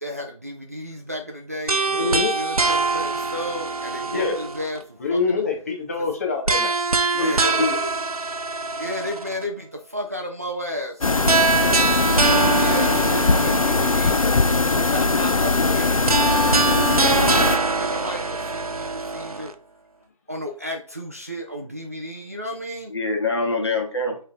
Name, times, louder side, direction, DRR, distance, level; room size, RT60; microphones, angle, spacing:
voice 1, 0.0-4.8 5.1-5.2 7.1-7.7 8.8-14.2 14.7-19.5 20.3-22.9, equal, 25° right, 0 dB, 0.4 m, -33 dB
sound 1, 1.7-4.8 6.5-9.4 11.3-14.4 16.1-19.5, right 3 dB, 85° right, 0.6 m, -23 dB
voice 2, 1.9-2.3 4.1-4.4 5.0-6.7, left 4 dB, 25° left, 1 dB, 0.8 m, -25 dB
voice 3, 7.2-7.9 22.9-24.2, left 2 dB, 45° left, 1 dB, 1.3 m, -24 dB
sound 2, 11.0-17.6, left 3 dB, 70° left, 0.5 m, -20 dB
3.6 x 3.2 x 3.8 m, 0.42 s
figure-of-eight pair, 155°, 18 cm